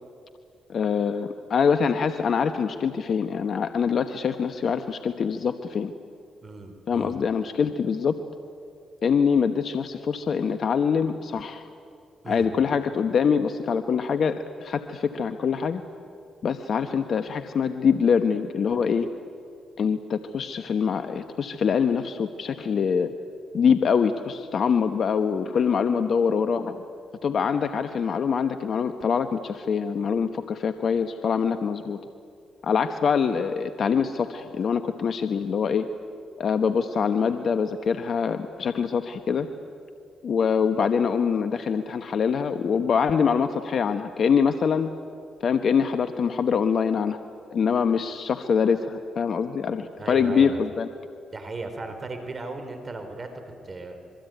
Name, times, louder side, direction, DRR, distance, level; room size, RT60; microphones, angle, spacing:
voice 1, 0.7-5.9 6.9-8.1 9.0-11.6 12.3-15.8 16.4-19.1 19.8-23.1 23.5-26.8 27.2-32.0 32.6-35.9 36.4-39.5 40.2-44.9 45.4-47.2 47.5-50.9, left 6 dB, 60° left, 9 dB, 1.1 m, -24 dB
voice 2, 6.4-7.2 12.2-12.5 50.0-50.6 51.3-53.3 53.6-54.0, right 3 dB, 40° right, 6 dB, 4.4 m, -36 dB
26.0 x 23.0 x 9.3 m, 2.4 s
supercardioid pair, 50°, 0 cm